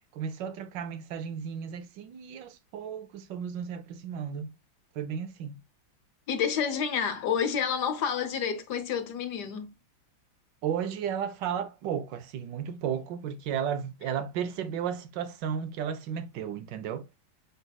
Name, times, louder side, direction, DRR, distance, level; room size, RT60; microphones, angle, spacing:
voice 1, 0.1-4.5 4.9-5.5 10.6-17.0, right 8 dB, 75° right, 1.3 m, -34 dB
voice 2, 6.3-9.7, left 7 dB, 65° left, 1.3 m, -29 dB
5.4 x 4.0 x 2.2 m
omnidirectional pair, 2.0 m